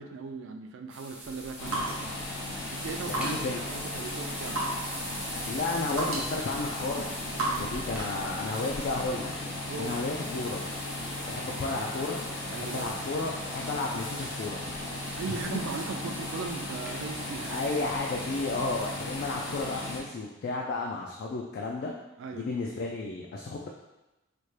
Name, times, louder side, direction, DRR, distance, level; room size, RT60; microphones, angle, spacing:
voice 1, 0.0-2.2 2.7-4.6 7.4-7.8 9.7-10.0 12.5-12.9 15.1-17.6 22.2-22.5, right 4 dB, 65° right, 5 dB, 0.3 m, -38 dB
sound 1, 0.9-19.6, right 1 dB, 5° right, 0.5 m, -43 dB
sound 2, 1.2-8.2, right 2 dB, 85° right, 0.9 m, -37 dB
sound 3, 1.6-20.0, left 2 dB, 80° left, 0.8 m, -37 dB
voice 2, 3.0-3.7 5.5-7.2 7.5-9.3 9.8-10.7 11.3-12.2 12.5-14.7 15.3-15.6 17.5-21.9 22.3-23.7, left 3 dB, 50° left, -1 dB, 0.3 m, -33 dB
4.1 x 2.1 x 3.2 m, 0.99 s
head